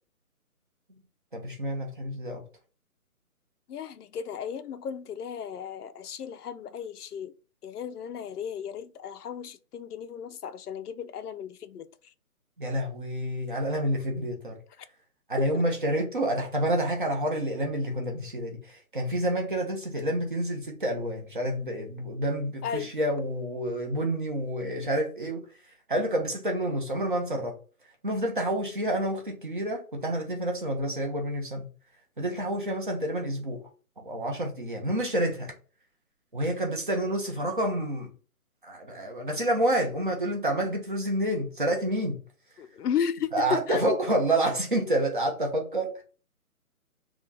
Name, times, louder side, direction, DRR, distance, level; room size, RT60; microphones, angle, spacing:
voice 1, 1.3-2.4 12.6-14.6 15.3-25.4 25.9-27.6 28.0-31.7 32.2-33.6 34.0-35.5 36.3-38.1 38.6-42.2 43.3-46.0, right 1 dB, 35° right, 0.7 m, -28 dB
voice 2, 3.7-7.3 7.6-11.9 15.4-15.6 22.6-22.9 42.6-44.0 44.8-44.9, left 8 dB, 90° left, 0.6 m, -34 dB
2.9 x 2.3 x 3.7 m
hypercardioid pair, 165°, 45 cm